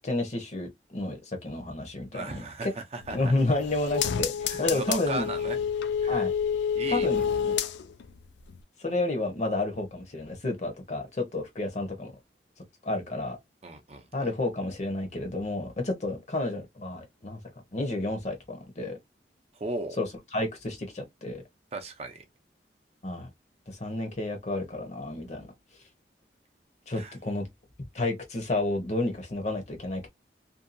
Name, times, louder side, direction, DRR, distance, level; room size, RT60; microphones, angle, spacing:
voice 1, 0.0-2.7 3.1-5.3 6.1-6.3 6.9-7.5 8.8-12.1 12.8-13.4 14.1-17.4 17.7-19.0 20.0-20.1 20.3-21.4 23.0-23.3 23.7-25.5 26.9-27.5 27.9-30.1, left 2 dB, 40° left, 0.8 m, -31 dB
voice 2, 2.1-3.3 4.5-5.6 6.0-6.2 6.7-7.1 13.6-14.3 19.5-20.0 21.7-22.2 26.9-27.1, right 2 dB, 35° right, 0.5 m, -36 dB
sound 1, 3.0-8.2 8.5-8.6, left 7 dB, 85° left, 0.4 m, -29 dB
2.7 x 2.3 x 2.5 m
head